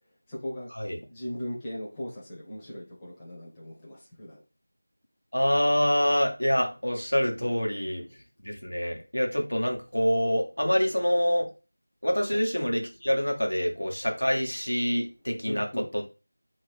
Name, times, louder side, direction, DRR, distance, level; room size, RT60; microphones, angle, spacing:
voice 1, 0.3-0.7 1.1-4.4 12.3-12.4 15.4-15.9, equal, 10° left, -8 dB, 0.7 m, -38 dB
voice 2, 5.3-8.0 8.4-11.5 12.0-15.7 15.9-16.0, equal, 90° left, 1 dB, 1.0 m, -26 dB
2.8 x 2.7 x 3.4 m, 0.32 s
figure-of-eight pair, 170°, 0 cm